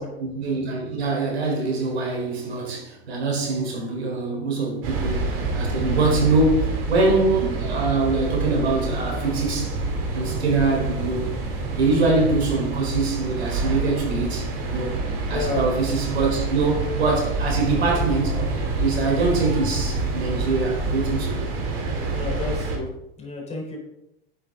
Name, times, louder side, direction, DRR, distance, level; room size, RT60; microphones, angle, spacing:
voice 1, 0.2-9.8 10.1-11.3 11.7-14.9 15.3-21.4, right 3 dB, 85° right, 4.1 m, -24 dB
sound 1, 4.8-22.8, right 3 dB, 55° right, 3.2 m, -27 dB
voice 2, 15.3-15.6 22.1-22.9 23.2-23.8, left 3 dB, 20° left, 3.9 m, -30 dB
10.0 x 7.9 x 3.8 m
hypercardioid pair, 105°, 31 cm